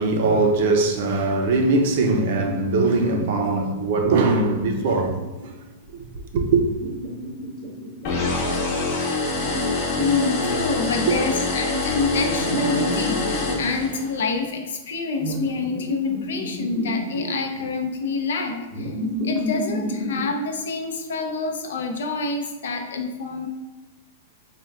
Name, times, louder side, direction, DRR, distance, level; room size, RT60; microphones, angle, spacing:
voice 1, 0.0-5.2 5.9-6.0 6.3-6.6 11.1-11.2, right 3 dB, 45° right, 0.5 m, -21 dB
sound 1, 3.7-5.5 6.6-8.3 9.3-11.2 12.3-13.8 15.2-15.8 16.1-17.6 18.7-20.3, equal, 15° right, 0.8 m, -30 dB
sound 2, 8.0-14.2, left 3 dB, 35° left, 0.8 m, -25 dB
voice 2, 10.0-18.9 19.2-23.5, left 3 dB, 80° left, 0.6 m, -27 dB
4.4 x 2.2 x 3.4 m
supercardioid pair, 180°, 0 cm